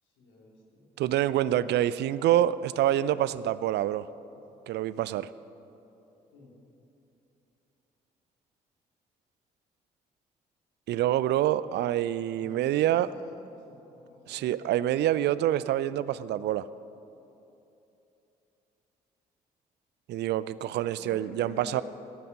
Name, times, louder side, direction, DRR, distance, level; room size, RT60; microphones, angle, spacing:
voice 1, 0.0-0.9 2.0-2.4 6.3-6.6 12.4-14.6 15.5-15.9 20.9-21.8, left 2 dB, 75° left, -3 dB, 2.7 m, -50 dB
voice 2, 1.0-4.1 4.7-5.3 10.9-13.1 14.3-16.7 20.1-21.8, right 12 dB, 60° right, 17 dB, 0.4 m, -26 dB
14.5 x 9.2 x 5.3 m, 2.9 s
hypercardioid pair, 45°, 20 cm